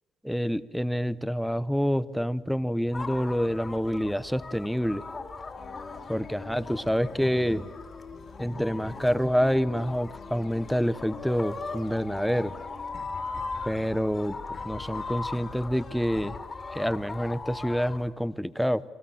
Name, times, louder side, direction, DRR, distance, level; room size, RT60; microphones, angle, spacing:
voice 1, 0.2-5.0 6.1-7.7 8.4-12.5 13.7-14.4 14.6-16.4 16.7-18.8, equal, ahead, 14 dB, 0.8 m, -27 dB
sound 1, 2.9-18.1, left 3 dB, 20° left, 2.6 m, -39 dB
sound 2, 5.6-16.4, left 6 dB, 45° left, 2.4 m, -47 dB
30.0 x 24.5 x 7.2 m, 1.2 s
cardioid pair, 125°, 0 cm